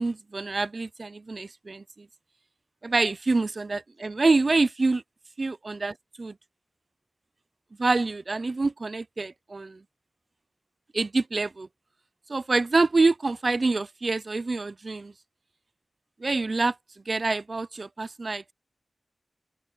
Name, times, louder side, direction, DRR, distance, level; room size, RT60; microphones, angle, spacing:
voice 1, 0.0-2.1 2.8-5.0 5.4-6.3 7.8-9.8 10.9-11.7 12.3-15.1 16.2-16.8 17.1-18.5, right 3 dB, 50° right, 0.6 m, -26 dB
open air
wide cardioid pair, 75°, 0 cm